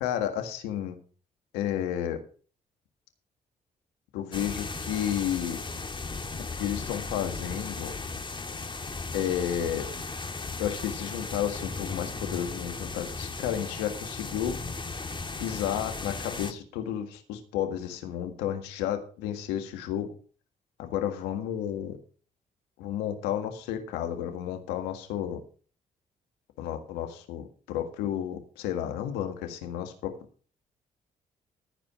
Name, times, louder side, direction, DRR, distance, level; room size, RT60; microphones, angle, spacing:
voice 1, 0.0-1.0 1.5-2.2 4.1-5.6 6.5-8.0 9.1-9.8 10.6-14.6 15.4-20.1 20.8-22.0 22.8-25.4 26.6-30.1, left 10 dB, 85° left, 6 dB, 1.7 m, -32 dB
sound 1, 4.3-16.5, left 3 dB, 30° left, 1.7 m, -36 dB
15.0 x 5.1 x 6.1 m, 0.39 s
supercardioid pair, 50°, 17 cm